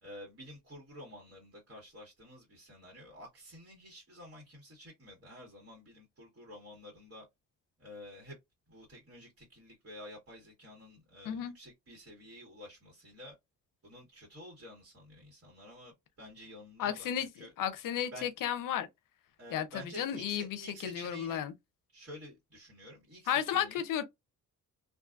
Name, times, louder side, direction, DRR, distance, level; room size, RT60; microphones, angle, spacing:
voice 1, 0.0-7.2 7.8-8.4 8.7-13.4 13.8-18.3 19.4-21.4 21.9-23.9, equal, 40° right, 1.5 m, -50 dB
voice 2, 11.2-11.6 16.8-18.9 19.5-21.5 23.3-24.0, left 10 dB, 75° left, 0.6 m, -33 dB
2.6 x 2.4 x 2.3 m
cardioid pair, 95°, 33 cm